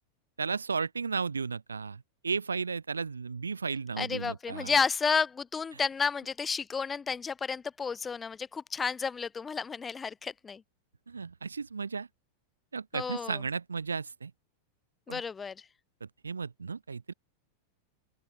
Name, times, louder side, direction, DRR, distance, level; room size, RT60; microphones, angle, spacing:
voice 1, 0.4-4.7 11.1-12.1 12.7-14.3 15.1-15.2 16.0-17.1, right 5 dB, 75° right, 3.9 m, -34 dB
voice 2, 4.0-10.6 12.9-13.4 15.1-15.6, left 5 dB, 15° left, 4.3 m, -31 dB
open air
figure-of-eight pair, 90°, 0 cm